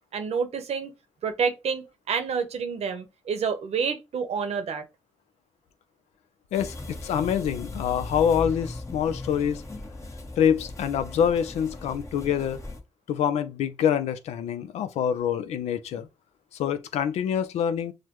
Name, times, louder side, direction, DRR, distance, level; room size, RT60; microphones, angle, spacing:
voice 1, 0.1-0.9 1.2-4.9, right 6 dB, 75° right, 0.8 m, -28 dB
voice 2, 6.5-9.6 10.4-12.6 13.1-16.1 16.5-17.9, left 8 dB, 90° left, 0.4 m, -26 dB
sound 1, 6.5-12.8, left 2 dB, 30° left, 1.2 m, -38 dB
6.3 x 2.1 x 3.0 m
supercardioid pair, 50°, 11 cm